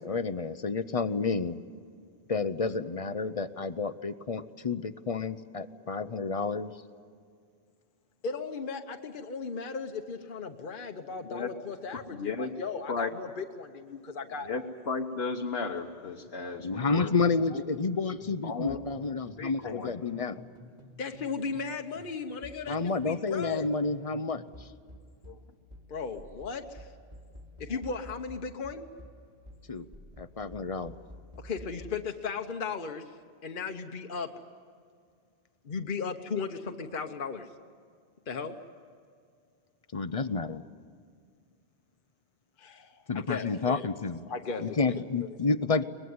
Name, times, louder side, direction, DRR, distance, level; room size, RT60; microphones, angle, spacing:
voice 1, 0.0-1.6 2.3-6.8 16.6-20.4 22.7-24.7 29.7-29.8 30.2-31.0 39.9-40.6 43.1-44.3 44.6-45.8, left 4 dB, 40° left, 13 dB, 0.7 m, -30 dB
voice 2, 8.2-14.5 21.0-23.6 25.9-26.9 27.6-28.8 31.4-33.1 33.4-34.3 35.6-37.5 38.3-38.6 42.6-43.9 44.3-44.6, left 5 dB, 55° left, 5 dB, 1.1 m, -36 dB
voice 3, 11.9-12.5 12.9-13.1 14.5-17.1 17.5-17.6 18.4-18.8 19.4-20.0 25.3-25.4 27.7-27.8, left 4 dB, 75° left, 2 dB, 1.4 m, -34 dB
sound 1, 17.0-18.0 18.2-21.7 22.0-32.0, equal, 40° right, 2.8 m, -50 dB
23.5 x 20.5 x 9.5 m, 2.2 s
omnidirectional pair, 1.1 m